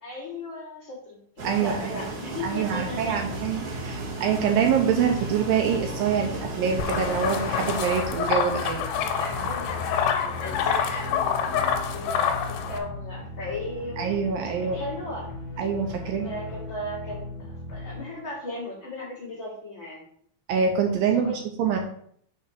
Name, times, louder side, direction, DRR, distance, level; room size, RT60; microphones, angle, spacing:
voice 1, 0.0-3.3 8.8-14.0 14.6-15.3 16.0-20.0 21.1-21.4, left 1 dB, 45° left, -7 dB, 1.7 m, -36 dB
sound 1, 1.4-7.8, right 3 dB, 50° right, 1.8 m, -35 dB
voice 2, 1.4-2.0 2.4-8.9 9.4-9.5 14.0-14.8 15.6-16.3 20.5-21.8, right 7 dB, 80° right, 3 dB, 2.1 m, -25 dB
sound 2, 2.8-19.3, left 1 dB, 65° left, 2.3 m, -38 dB
sound 3, 6.8-12.8, left 7 dB, 80° left, 2.7 m, -27 dB
6.0 x 4.2 x 6.2 m, 0.64 s
omnidirectional pair, 4.8 m